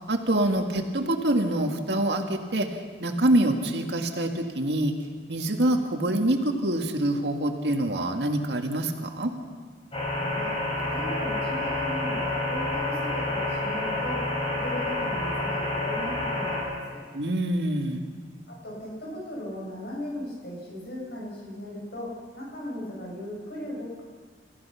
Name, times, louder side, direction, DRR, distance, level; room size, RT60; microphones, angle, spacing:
voice 1, 0.1-2.7 3.0-4.9 5.3-9.3 17.1-18.0, right 1 dB, 75° right, 3 dB, 1.9 m, -25 dB
sound 1, 9.9-16.6, left 2 dB, 35° left, 5.6 m, -29 dB
voice 2, 10.1-10.5 10.9-14.2 14.5-17.0 18.5-22.1 22.4-24.0, left 1 dB, 65° left, -3 dB, 7.7 m, -37 dB
29.5 x 15.0 x 5.8 m, 1.5 s
head